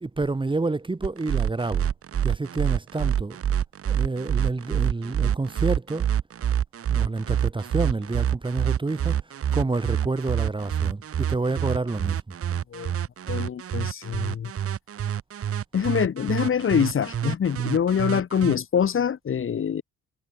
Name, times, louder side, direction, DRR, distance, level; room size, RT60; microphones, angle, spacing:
voice 1, 0.0-1.9 2.2-3.4 3.9-6.1 6.9-12.3, right 3 dB, 15° right, 1.2 m, -28 dB
sound 1, 1.0-18.6, right 9 dB, 50° right, 1.1 m, -26 dB
voice 2, 13.3-14.5 15.7-19.8, left 8 dB, 45° left, 1.3 m, -25 dB
cardioid pair, 90°, 30 cm